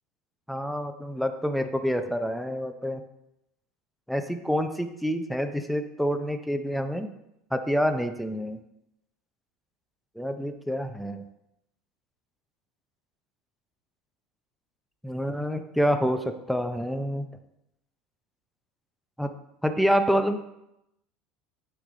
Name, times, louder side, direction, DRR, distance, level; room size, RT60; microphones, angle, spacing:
voice 1, 0.5-3.0 4.1-7.1 7.5-8.6 10.2-11.2 15.0-17.3 19.2-19.3 19.6-20.4, equal, ahead, 8 dB, 0.5 m, -27 dB
9.3 x 3.3 x 3.8 m, 0.85 s
supercardioid pair, 115°, 2 cm